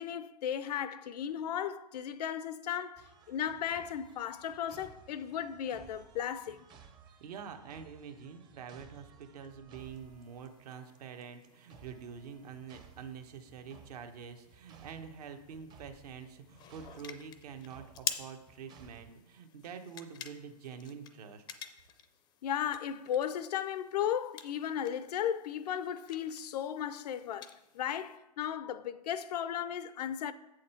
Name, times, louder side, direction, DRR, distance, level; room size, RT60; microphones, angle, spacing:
voice 1, 0.0-6.7 22.4-30.3, left 9 dB, 70° left, 0.5 m, -35 dB
sound 1, 3.0-19.1, right 6 dB, 20° right, 0.6 m, -58 dB
voice 2, 7.2-21.4, right 6 dB, 70° right, 1.1 m, -46 dB
sound 2, 9.7-28.2, left 9 dB, 20° left, 0.5 m, -49 dB
7.8 x 6.4 x 4.3 m
hypercardioid pair, 145°, 21 cm